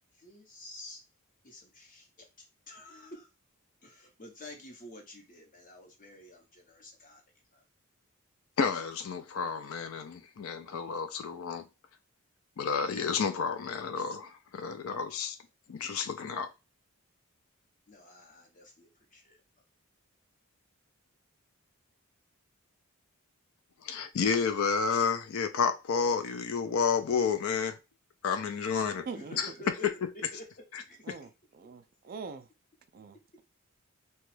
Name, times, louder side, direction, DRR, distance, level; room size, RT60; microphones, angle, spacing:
voice 1, 0.1-1.0 1.4-3.3 3.8-7.2 7.5-7.6 17.9-19.4 29.1-29.9 30.1-30.5 30.8-31.3, left 1 dB, 40° left, 0.9 m, -50 dB
voice 2, 8.6-11.7 12.6-15.4 15.7-16.5 23.8-27.8 28.2-29.1 29.3-29.5 31.1-31.2, left 5 dB, 65° left, 0.4 m, -30 dB
voice 3, 29.1-29.4 31.1-32.5 32.9-33.4, right 5 dB, 40° right, 0.3 m, -43 dB
2.9 x 2.2 x 3.1 m
head